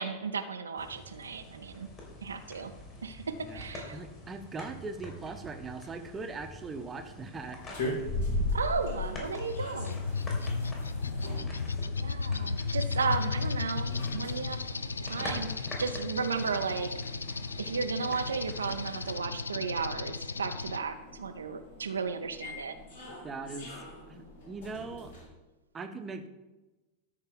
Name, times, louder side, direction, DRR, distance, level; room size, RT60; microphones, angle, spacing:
voice 1, 0.0-1.9 2.2-2.7 3.0-4.0 8.5-10.0 12.0-14.6 15.0-16.9 17.6-22.7, right 5 dB, 70° right, 8 dB, 0.6 m, -34 dB
sound 1, 0.8-19.2, left 1 dB, 30° left, 3.1 m, -46 dB
voice 2, 3.9-7.6 11.0-11.5 23.2-23.7 24.1-25.1 25.7-26.3, right 3 dB, 20° right, 7 dB, 1.0 m, -40 dB
sound 2, 7.6-25.3, left 2 dB, 60° left, 2.6 m, -40 dB
sound 3, 8.9-20.8, left 4 dB, 75° left, 0.3 m, -35 dB
13.0 x 4.6 x 5.1 m, 1.1 s
figure-of-eight pair, 90°, 0 cm